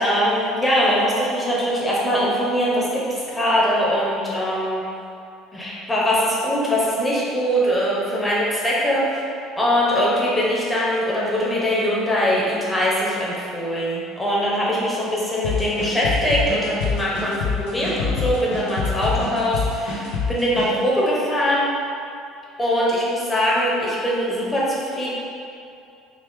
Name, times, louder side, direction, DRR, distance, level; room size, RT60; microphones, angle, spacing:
voice 1, 0.0-4.8 5.5-9.2 9.6-21.7 22.6-25.1, equal, 10° left, -6 dB, 0.9 m, -22 dB
sound 1, 15.4-20.7, left 5 dB, 65° left, 0.8 m, -25 dB
3.8 x 2.8 x 3.6 m, 2.5 s
figure-of-eight pair, 60°, 0 cm